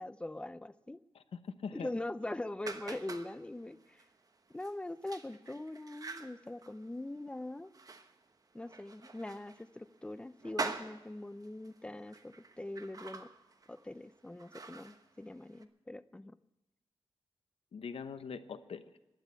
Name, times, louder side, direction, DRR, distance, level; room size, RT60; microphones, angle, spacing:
voice 1, 0.0-1.0 1.7-4.0 4.5-7.7 8.5-13.3 13.7-16.4, left 1 dB, 10° left, 14 dB, 0.5 m, -42 dB
voice 2, 1.1-1.9 17.7-19.0, left 6 dB, 80° left, 11 dB, 0.9 m, -43 dB
sound 1, 2.6-15.6, right 3 dB, 40° right, 1.0 m, -46 dB
12.0 x 10.5 x 9.3 m, 0.99 s
wide cardioid pair, 135°, 10 cm